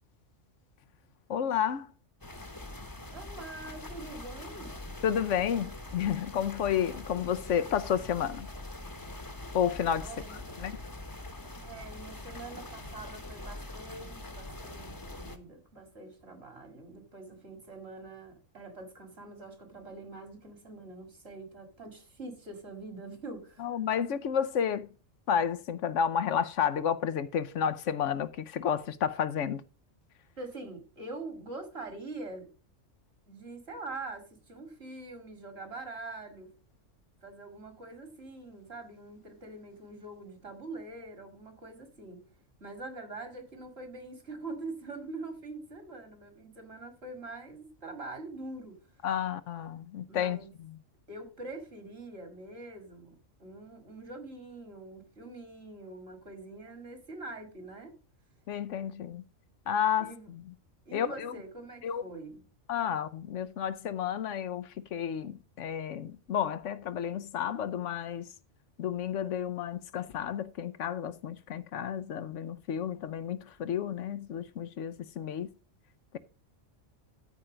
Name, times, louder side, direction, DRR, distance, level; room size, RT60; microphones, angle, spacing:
voice 1, 1.3-1.9 5.0-8.5 9.5-10.7 23.6-24.9 25.3-29.6 49.0-50.8 58.5-59.2 59.7-60.4 60.9-61.3 61.8-62.0 62.7-68.3 68.8-75.5, left 8 dB, 75° left, 1.0 m, -31 dB
sound 1, 2.2-15.4, left 2 dB, 20° left, 0.9 m, -43 dB
voice 2, 3.1-4.8 10.0-10.4 11.6-23.8 30.4-32.5 33.3-36.5 37.2-42.3 42.6-48.8 50.1-50.5 51.1-58.0 60.0-60.3 60.9-62.4, right 2 dB, 55° right, 2.4 m, -44 dB
13.5 x 4.5 x 5.0 m
omnidirectional pair, 1.3 m